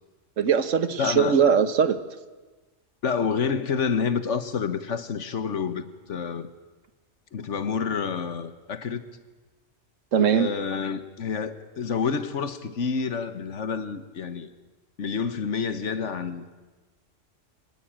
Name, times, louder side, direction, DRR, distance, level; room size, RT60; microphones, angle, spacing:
voice 1, 0.4-2.0 10.1-10.5, right 7 dB, 85° right, 13 dB, 1.5 m, -21 dB
voice 2, 1.0-1.4 3.0-6.5 7.3-9.0 10.2-14.5 15.0-16.6, left 6 dB, 70° left, 12 dB, 1.6 m, -28 dB
25.0 x 18.0 x 8.9 m, 1.3 s
omnidirectional pair, 1.3 m